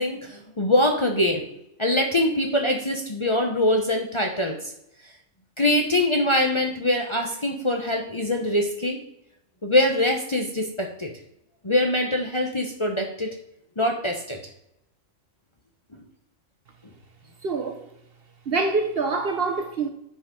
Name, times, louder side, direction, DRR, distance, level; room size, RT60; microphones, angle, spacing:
voice 1, 0.0-1.4 1.8-4.6 5.6-9.0 9.6-11.1 11.6-13.4 13.8-14.4, left 1 dB, 25° left, 0.8 m, -23 dB
voice 2, 17.4-17.9 18.5-19.9, right 3 dB, 55° right, 0.9 m, -25 dB
9.4 x 5.1 x 5.2 m
omnidirectional pair, 1.4 m